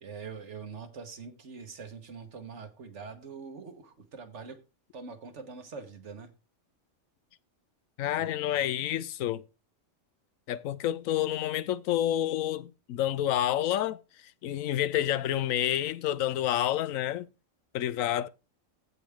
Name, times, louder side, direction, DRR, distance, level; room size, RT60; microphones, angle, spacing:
voice 1, 0.0-4.6 4.9-6.3 8.2-8.3, right 5 dB, 65° right, 1.7 m, -43 dB
voice 2, 8.0-9.4 10.5-17.3 17.7-18.3, left 12 dB, 90° left, 1.0 m, -29 dB
15.5 x 5.2 x 3.6 m
omnidirectional pair, 1.3 m